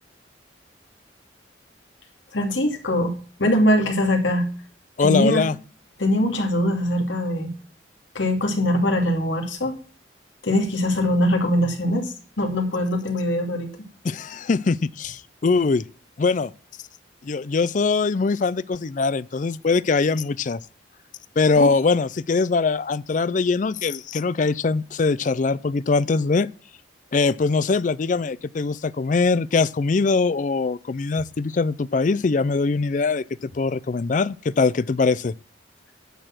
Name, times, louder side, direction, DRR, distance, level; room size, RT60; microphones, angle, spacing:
voice 1, 2.3-4.5 5.0-5.4 6.0-7.5 8.1-9.8 10.4-13.7 21.6-21.7, left 1 dB, 85° left, 2.6 m, -22 dB
voice 2, 5.0-5.5 14.0-15.9 16.2-16.5 17.2-20.6 21.4-26.5 27.1-35.3, left 4 dB, 40° left, 0.4 m, -22 dB
10.5 x 6.6 x 6.0 m
head